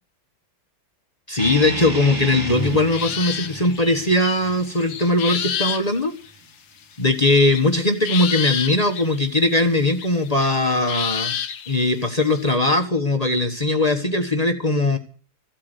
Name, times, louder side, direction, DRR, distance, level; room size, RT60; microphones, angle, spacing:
voice 1, 1.3-6.1 7.0-11.4 11.7-15.0, left 2 dB, 25° left, 5 dB, 1.1 m, -20 dB
sound 1, 1.4-6.4, right 2 dB, 10° right, 1.7 m, -32 dB
sound 2, 2.5-5.8 6.3-6.4 7.5-9.3 9.6-12.5, left 8 dB, 75° left, 1.7 m, -29 dB
15.0 x 8.6 x 9.5 m, 0.42 s
omnidirectional pair, 2.1 m